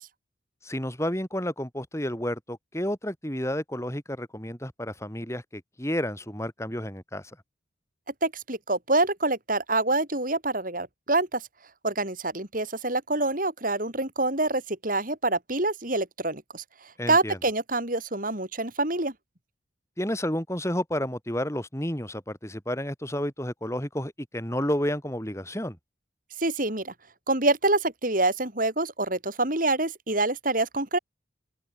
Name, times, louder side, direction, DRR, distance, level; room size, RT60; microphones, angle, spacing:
voice 1, 0.6-7.3 17.0-17.4 20.0-25.8, equal, 15° left, 4.1 m, -31 dB
voice 2, 8.2-11.4 11.8-16.6 17.1-19.1 26.4-26.9 27.3-31.0, right 2 dB, 45° right, 4.9 m, -26 dB
open air
head